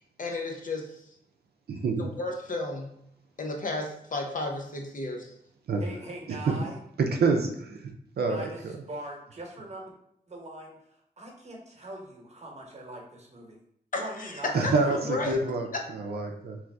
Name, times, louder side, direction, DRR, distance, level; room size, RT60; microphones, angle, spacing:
voice 1, 0.2-1.0 2.0-2.9 3.4-5.3 13.9-15.4, left 2 dB, 50° left, 2 dB, 0.7 m, -33 dB
voice 2, 1.7-2.1 5.7-5.8 6.3-6.5 7.0-7.8 8.2-8.5 14.5-15.7 16.1-16.6, right 4 dB, 65° right, 3 dB, 0.5 m, -26 dB
voice 3, 5.8-6.8 8.2-9.9 10.3-10.8 11.2-13.6 13.9-15.1, right 1 dB, 40° right, 0 dB, 1.0 m, -42 dB
3.0 x 2.4 x 3.3 m, 0.74 s
cardioid pair, 45°, 18 cm